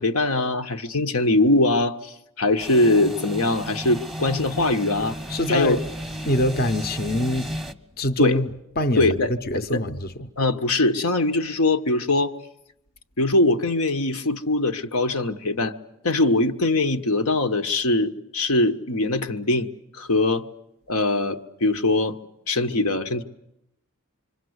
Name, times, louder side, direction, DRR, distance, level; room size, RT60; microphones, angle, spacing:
voice 1, 0.0-5.2 5.5-5.8 8.2-8.4 9.0-9.3 9.7-9.8 10.4-12.3 13.2-15.7 16.0-19.7 19.9-20.4 20.9-22.2 22.5-23.2, left 2 dB, 80° left, 1.2 m, -22 dB
sound 1, 2.6-7.7, equal, ahead, 0.9 m, -33 dB
voice 2, 5.3-5.8 6.2-7.5 8.0-8.5 8.8-10.3, left 1 dB, 45° left, 0.9 m, -24 dB
26.5 x 25.0 x 8.0 m
head